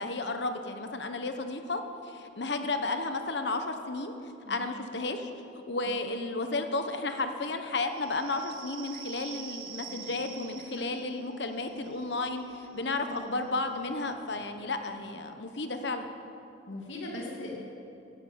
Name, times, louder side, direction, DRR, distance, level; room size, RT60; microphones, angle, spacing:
voice 1, 0.0-4.2 4.5-5.3 5.7-16.1, left 3 dB, 60° left, 7 dB, 1.1 m, -33 dB
voice 2, 4.4-4.8 5.9-6.0 9.8-10.3 10.8-11.3 12.7-13.4 16.7-17.7, left 1 dB, 80° left, -2 dB, 2.4 m, -42 dB
sound 1, 7.9-15.1, right 7 dB, 50° right, 1.4 m, -48 dB
13.5 x 10.5 x 8.6 m, 2.8 s
head